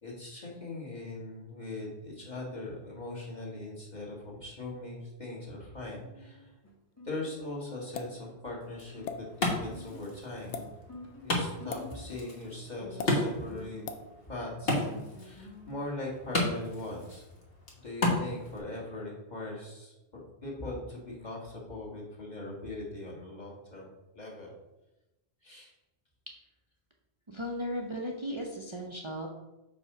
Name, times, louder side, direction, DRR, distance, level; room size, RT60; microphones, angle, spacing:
voice 1, 0.0-6.5 7.0-10.7 11.2-13.8 14.3-17.2 17.7-24.5 25.4-25.7, left 2 dB, 40° left, -4 dB, 1.9 m, -40 dB
Guitar, 6.0-15.8, left 2 dB, 15° left, 1.1 m, -51 dB
sound 1, 7.9-8.2 9.0-9.2 10.4-10.7 11.7-11.9 13.0-13.1 13.9-14.0, left 5 dB, 85° left, 1.0 m, -37 dB
Wood, 8.6-18.6, left 1 dB, 60° left, 1.5 m, -34 dB
voice 2, 27.3-29.3, equal, 30° right, 0 dB, 0.6 m, -36 dB
5.4 x 4.2 x 5.9 m, 1.0 s
omnidirectional pair, 1.1 m